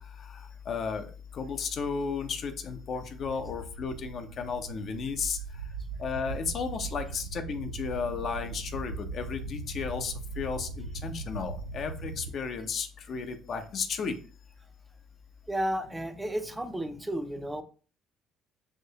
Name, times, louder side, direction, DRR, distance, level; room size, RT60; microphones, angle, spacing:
voice 1, 0.7-1.0 1.4-5.4 6.0-14.1, left 5 dB, 45° left, 6 dB, 0.6 m, -33 dB
sound 1, 3.2-12.3, right 4 dB, 80° right, 0.5 m, -40 dB
voice 2, 15.5-17.6, right 1 dB, 10° right, 8 dB, 0.5 m, -32 dB
5.7 x 2.7 x 2.8 m, 0.39 s
figure-of-eight pair, 50°, 0 cm